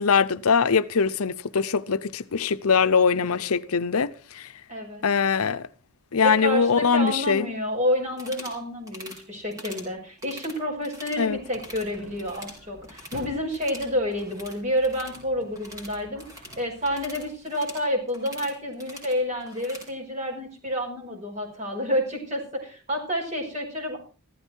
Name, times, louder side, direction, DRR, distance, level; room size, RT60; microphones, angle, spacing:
voice 1, 0.0-4.5 5.0-5.7 6.1-7.5 11.2-11.4, left 5 dB, 75° left, 0.7 m, -22 dB
voice 2, 4.7-5.0 6.2-16.2 16.6-24.0, equal, 30° right, 5.9 m, -29 dB
sound 1, 8.1-8.6 8.9-9.2 9.5-9.9 10.2-11.2 11.5-11.9 12.2-13.3 13.5-19.9, equal, 15° right, 4.1 m, -44 dB
sound 2, 11.2-17.3, equal, 75° right, 7.9 m, -49 dB
15.0 x 13.5 x 4.6 m
head